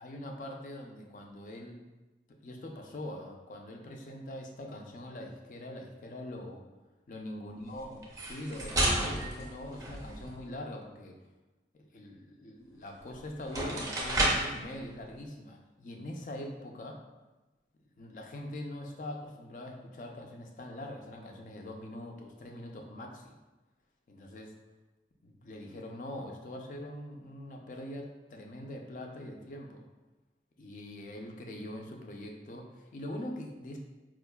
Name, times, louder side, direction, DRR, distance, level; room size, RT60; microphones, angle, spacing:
voice 1, 0.0-1.8 2.4-6.6 7.1-11.2 11.7-17.0 18.0-23.4 24.1-24.5 25.2-29.8 30.6-33.8, left 1 dB, 45° left, 2 dB, 0.4 m, -43 dB
sound 1, 8.0-10.4 12.9-13.0 13.4-14.6, right 1 dB, 20° right, 0.5 m, -31 dB
4.5 x 2.4 x 2.2 m, 1.1 s
head